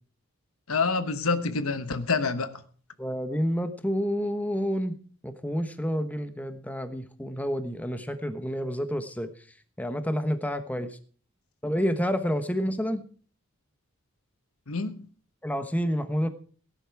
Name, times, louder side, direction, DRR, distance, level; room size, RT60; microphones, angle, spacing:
voice 1, 0.7-2.6 14.7-15.1, left 4 dB, 75° left, 1.2 m, -27 dB
voice 2, 3.0-5.0 5.2-9.3 9.8-10.9 11.6-13.0 15.4-16.3, equal, 5° left, 1.1 m, -29 dB
18.0 x 10.5 x 4.7 m
head